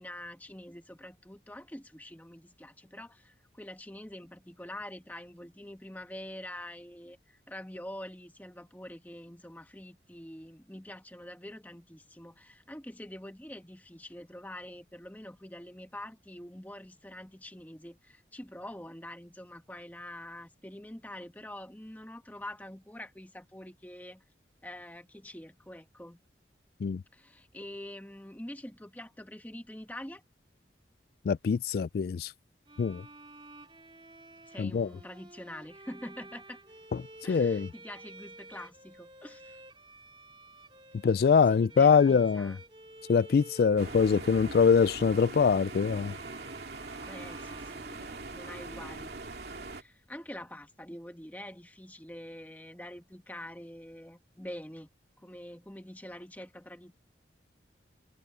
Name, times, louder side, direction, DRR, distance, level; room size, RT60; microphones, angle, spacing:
voice 1, 0.0-24.2 24.6-26.2 27.1-30.2 34.5-36.6 37.2-39.6 41.5-42.6 47.0-49.1 49.6-54.9 55.2-57.0, left 1 dB, 10° left, 1.4 m, -45 dB
voice 2, 31.3-32.3 32.8-33.0 34.6-34.9 36.9-37.0 37.3-37.7 41.0-42.6 43.1-46.1, left 6 dB, 55° left, 0.3 m, -24 dB
Bowed string instrument, 32.7-48.5, right 2 dB, 30° right, 2.5 m, -51 dB
sound 1, 43.8-49.8, right 3 dB, 65° right, 2.5 m, -42 dB
head